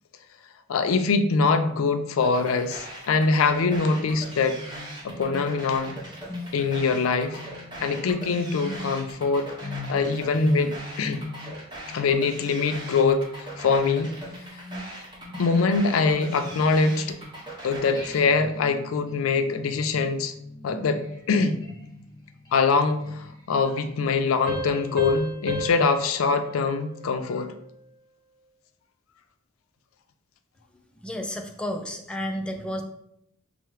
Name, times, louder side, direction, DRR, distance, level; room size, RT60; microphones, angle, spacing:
voice 1, 0.7-4.6 5.0-6.0 6.5-7.4 7.8-9.5 9.9-11.2 11.9-13.3 13.6-14.1 15.4-17.2 17.6-20.3 20.6-21.0 21.3-21.6 22.5-27.5, left 4 dB, 80° left, 9 dB, 0.4 m, -23 dB
sound 1, 2.2-18.2, right 1 dB, 20° right, 0.9 m, -41 dB
sound 2, 4.4-17.5 17.9-23.8, left 2 dB, 20° left, 1.0 m, -40 dB
Piano, 24.5-27.8, equal, 45° right, 0.6 m, -35 dB
voice 2, 31.0-32.8, equal, 5° left, 3 dB, 0.3 m, -31 dB
5.6 x 2.1 x 3.1 m, 0.75 s
head